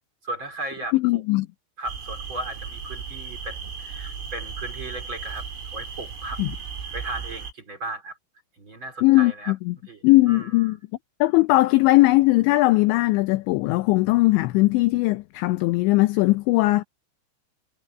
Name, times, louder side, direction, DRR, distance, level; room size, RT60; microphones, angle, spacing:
voice 1, 0.2-1.2 1.8-5.5 5.7-6.4 6.9-8.2 8.6-9.5 9.9-10.5, right 2 dB, 25° right, 4.1 m, -36 dB
voice 2, 0.9-1.5 6.4-6.5 9.0-9.8 10.0-10.8 11.2-16.8, left 20 dB, 80° left, 2.7 m, -19 dB
sound 1, 1.9-7.5, right 6 dB, 80° right, 6.1 m, -36 dB
omnidirectional pair, 5.8 m